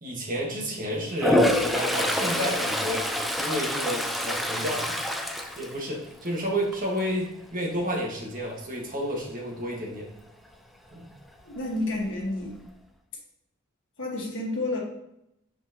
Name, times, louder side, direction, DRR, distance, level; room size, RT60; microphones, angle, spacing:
voice 1, 0.0-3.1 3.4-5.0 5.3-10.1 10.9-11.1, equal, 40° right, -2 dB, 1.7 m, -31 dB
Toilet flush, 1.1-6.3 6.7-7.1 11.6-11.7 11.9-12.7, left 1 dB, ahead, 0.4 m, -26 dB
voice 2, 11.4-12.5 14.0-14.8, left 2 dB, 60° left, -2 dB, 1.7 m, -30 dB
5.9 x 5.7 x 3.0 m, 0.80 s
head